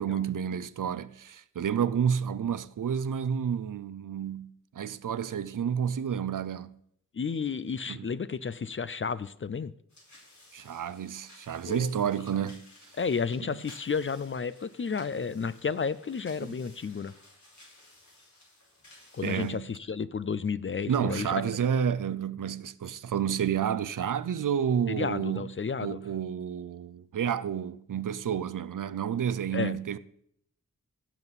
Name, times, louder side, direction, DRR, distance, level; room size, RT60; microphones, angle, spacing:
voice 1, 0.0-6.8 7.9-8.1 10.5-12.6 16.4-16.6 19.2-19.7 20.9-25.4 25.8-30.0, right 8 dB, 65° right, 0.5 m, -30 dB
voice 2, 7.1-9.7 11.7-12.1 13.0-17.1 19.1-21.5 24.9-26.0 29.5-30.0, left 5 dB, 35° left, 0.4 m, -32 dB
sound 1, 9.9-19.5, left 1 dB, 55° left, 4.4 m, -56 dB
16.0 x 7.2 x 4.1 m
wide cardioid pair, 95°, 35 cm